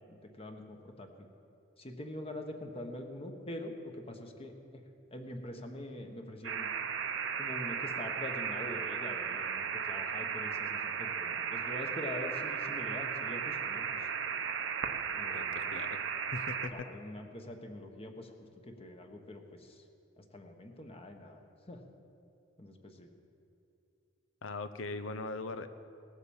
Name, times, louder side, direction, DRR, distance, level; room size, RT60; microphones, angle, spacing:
voice 1, 0.1-1.3 1.8-6.7 7.4-14.0 15.1-15.7 16.7-18.3 18.6-19.8 20.2-21.4 21.7-21.8 22.6-23.1, left 1 dB, 30° left, 4 dB, 1.3 m, -44 dB
sound 1, 6.4-16.7, right 7 dB, 70° right, 0.8 m, -35 dB
voice 2, 15.3-16.0 16.3-16.7 24.4-25.7, left 3 dB, 85° left, 11 dB, 0.7 m, -40 dB
18.0 x 8.1 x 7.2 m, 2.6 s
head